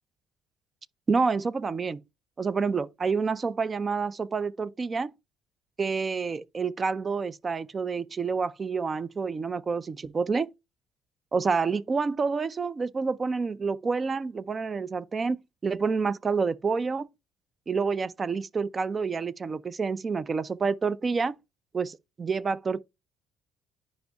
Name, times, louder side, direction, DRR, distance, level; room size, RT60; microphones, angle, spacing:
voice 1, 1.1-2.0 2.4-5.1 5.8-10.5 11.3-17.1 17.7-21.4 21.7-22.8, right 5 dB, 30° right, 0.5 m, -28 dB
10.5 x 5.2 x 2.3 m
supercardioid pair, 85°, 0 cm